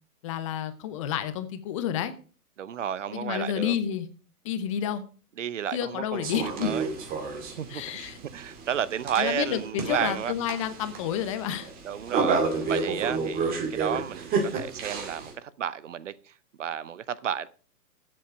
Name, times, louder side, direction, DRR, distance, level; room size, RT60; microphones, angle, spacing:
voice 1, 0.2-2.1 3.1-4.1 4.4-5.0 5.7-6.7 7.7-8.2 9.2-11.7, left 9 dB, 20° left, 0.7 m, -30 dB
voice 2, 2.6-3.7 5.4-6.9 7.6-10.3 11.8-12.4 12.7-17.5, right 9 dB, 50° right, 0.7 m, -32 dB
sound 1, 6.2-15.3, right 4 dB, 20° right, 2.1 m, -31 dB
14.5 x 7.8 x 4.7 m
figure-of-eight pair, 125°, 46 cm